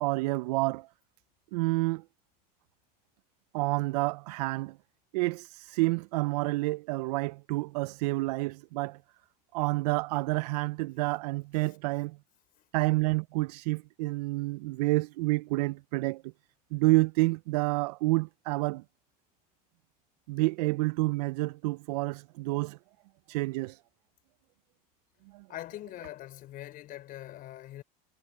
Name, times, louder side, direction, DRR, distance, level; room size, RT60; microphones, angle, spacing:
voice 1, 0.0-0.9 1.5-2.0 3.5-4.8 5.1-9.0 9.5-12.2 12.7-16.3 16.7-18.8 20.3-22.8 23.3-23.8 25.3-25.4, right 22 dB, 85° right, 0.4 m, -29 dB
voice 2, 25.5-27.8, left 13 dB, 45° left, 5.2 m, -42 dB
supercardioid pair, 130°, 20 cm